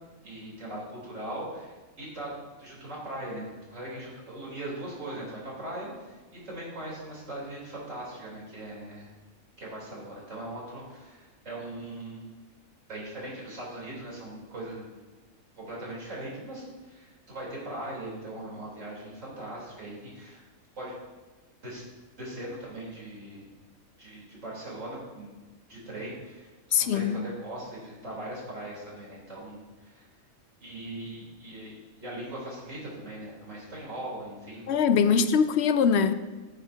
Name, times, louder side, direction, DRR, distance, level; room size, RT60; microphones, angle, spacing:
voice 1, 0.2-2.3 2.6-9.1 9.6-12.2 12.9-14.9 15.5-20.4 20.8-20.9 21.6-21.8 22.2-23.4 24.0-25.3 25.7-26.5 26.8-30.1 30.6-34.7 35.0-35.5, right 1 dB, 60° right, -5 dB, 4.1 m, -40 dB
voice 2, 26.7-27.3 34.7-36.1, left 6 dB, 65° left, 11 dB, 0.7 m, -22 dB
15.0 x 9.4 x 2.8 m, 1.2 s
omnidirectional pair, 1.4 m